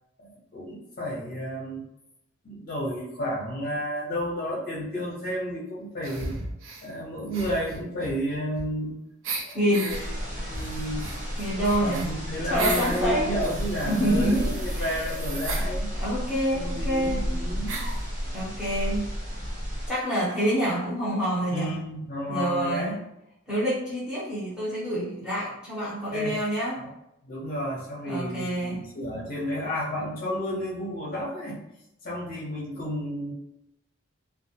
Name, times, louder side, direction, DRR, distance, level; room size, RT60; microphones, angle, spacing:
voice 1, 0.2-1.8 2.4-6.3 6.8-9.0 9.4-11.1 11.8-15.9 16.5-17.9 21.5-23.0 26.1-26.4 26.8-26.9 27.2-31.6 32.0-33.3, equal, 45° left, -6 dB, 0.6 m, -32 dB
sound 1, 6.0-6.9 7.3-8.9 9.2-10.0 10.5-13.0 13.4-15.7 16.6-16.7 16.9-17.0 17.7-18.0, right 3 dB, 70° right, 0.4 m, -36 dB
voice 2, 9.5-10.0 11.4-12.1 12.5-13.4 13.9-15.0 15.9-17.3 18.3-19.1 19.9-21.8 22.3-23.0 23.5-26.8 28.0-28.9, equal, 5° right, -9 dB, 0.8 m, -27 dB
sound 2, 9.9-19.9, equal, 45° right, 0.8 m, -32 dB
2.3 x 2.1 x 2.7 m, 0.85 s
head